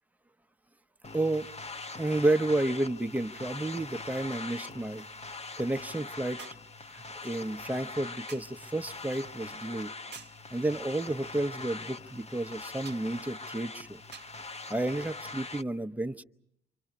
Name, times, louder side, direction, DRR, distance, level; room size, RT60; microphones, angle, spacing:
sound 1, 1.0-15.6, left 3 dB, 20° left, 1.0 m, -42 dB
voice 1, 1.1-1.5 2.0-5.1 5.6-6.4 6.9-9.9 10.5-14.0 14.7-16.2, right 2 dB, 5° right, 8 dB, 0.9 m, -31 dB
sound 2, 6.4-6.7 8.3-8.6 10.1-10.5 12.8-13.1 14.1-14.4 15.5-15.6, right 6 dB, 30° right, 1.2 m, -48 dB
30.0 x 26.0 x 5.0 m, 0.72 s
hypercardioid pair, 55°, 35 cm